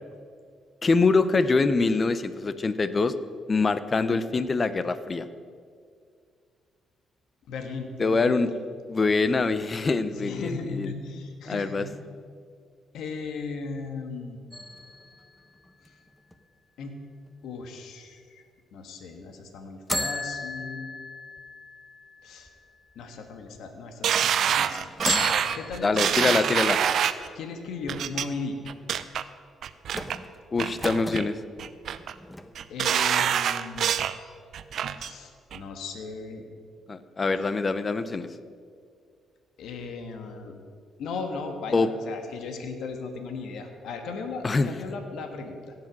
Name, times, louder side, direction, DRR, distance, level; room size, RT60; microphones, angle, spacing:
voice 1, 0.8-3.1 3.5-5.3 8.0-8.5 8.9-10.9 11.5-11.9 25.8-26.8 30.5-31.3 36.9-38.3 41.7-41.9 44.4-44.7, left 3 dB, 35° left, 13 dB, 0.7 m, -24 dB
voice 2, 7.5-8.6 9.8-11.9 12.9-14.4 15.8-16.0 16.8-17.0 17.4-18.4 18.7-20.9 22.2-22.5 22.9-26.6 26.8-27.0 27.3-28.6 32.7-33.9 35.0-36.5 37.3-37.4 39.6-40.6 41.0-45.7, left 4 dB, 75° left, 5 dB, 1.4 m, -37 dB
sound 1, 14.5-16.3 19.9-23.0 23.5-23.6 24.9-26.7 29.9-31.3 32.0-32.9 33.2-33.3, left 1 dB, 5° left, 0.9 m, -35 dB
sound 2, 24.0-27.3 27.9-28.2 28.7-29.2 29.6-30.2 30.6-31.3 31.6-32.1 32.5-34.2 34.5-35.1 35.5-35.6, right 9 dB, 65° right, 0.6 m, -26 dB
16.5 x 7.6 x 6.1 m, 2.1 s
cardioid pair, 90°, 0 cm